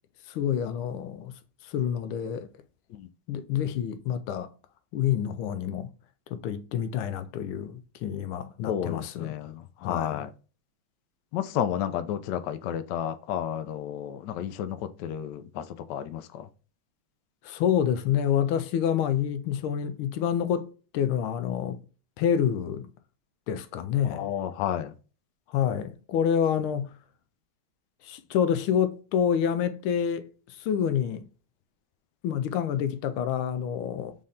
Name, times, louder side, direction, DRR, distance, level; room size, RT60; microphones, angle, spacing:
voice 1, 0.3-1.3 1.7-2.5 3.3-4.5 4.9-5.9 6.3-9.3 9.8-10.2 17.4-21.8 22.2-22.9 23.5-24.3 25.5-26.9 28.1-30.3 30.6-31.2 32.2-34.1, left 8 dB, 90° left, 1.5 m, -27 dB
voice 2, 8.7-10.3 11.3-16.5 24.0-24.9, left 10 dB, 70° left, 1.1 m, -32 dB
5.4 x 2.7 x 3.4 m
omnidirectional pair, 2.3 m